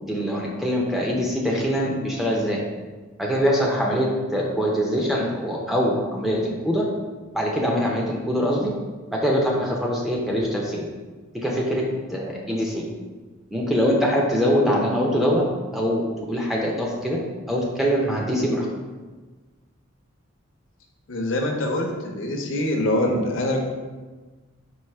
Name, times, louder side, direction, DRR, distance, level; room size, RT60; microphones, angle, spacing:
voice 1, 0.0-2.6 3.2-6.8 7.3-8.7 9.1-10.9 11.4-11.8 12.1-12.8 13.5-15.4 15.7-17.2 17.5-18.7, equal, ahead, -4 dB, 0.5 m, -23 dB
voice 2, 21.1-23.7, left 1 dB, 65° left, 2 dB, 0.6 m, -24 dB
4.7 x 2.6 x 4.3 m, 1.3 s
head